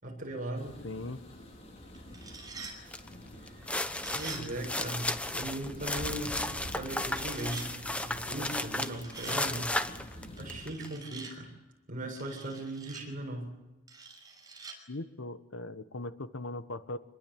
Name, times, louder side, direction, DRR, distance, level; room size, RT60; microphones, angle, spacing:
voice 1, 0.0-0.7 3.4-3.5 4.1-9.7 10.4-11.5 11.9-13.5, right 1 dB, 40° right, 2 dB, 7.6 m, -38 dB
sound 1, 0.5-10.7, left 1 dB, 35° left, 5.2 m, -47 dB
voice 2, 0.8-1.2 14.9-17.0, left 2 dB, 75° left, 11 dB, 1.3 m, -39 dB
sound 2, 1.9-2.8 3.8-4.4 7.1-7.7 8.6-9.4 10.4-11.3 12.2-13.0 13.9-14.8, right 4 dB, 20° right, 5.8 m, -46 dB
sound 3, 2.9-3.1 3.5-10.9, left 1 dB, 5° left, 1.0 m, -34 dB
27.0 x 21.5 x 8.8 m, 1.0 s
head